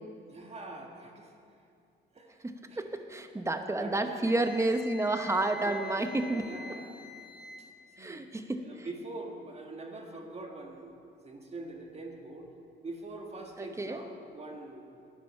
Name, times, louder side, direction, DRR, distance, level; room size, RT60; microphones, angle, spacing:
voice 1, 0.3-1.3 2.1-2.8 3.8-4.3 5.4-7.0 7.6-7.7 8.0-8.3 8.6-12.5 12.8-14.9, right 2 dB, 30° right, 2 dB, 1.5 m, -44 dB
voice 2, 2.4-6.5 8.0-8.9 13.6-14.0, right 2 dB, 15° right, 7 dB, 0.9 m, -31 dB
Wind instrument woodwind instrument, 4.2-7.7, left 4 dB, 50° left, 1.1 m, -46 dB
11.0 x 10.0 x 5.6 m, 2.5 s
cardioid pair, 90°, 20 cm